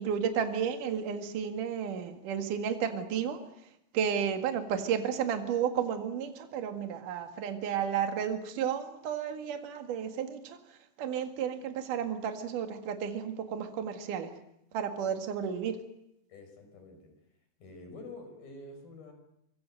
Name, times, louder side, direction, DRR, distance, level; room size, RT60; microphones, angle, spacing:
voice 1, 0.0-3.4 3.9-14.3 14.7-15.8, right 8 dB, 60° right, 6 dB, 3.3 m, -32 dB
voice 2, 16.3-17.1 17.6-19.1, left 2 dB, 70° left, 5 dB, 7.7 m, -47 dB
26.0 x 23.0 x 7.8 m, 0.80 s
omnidirectional pair, 4.3 m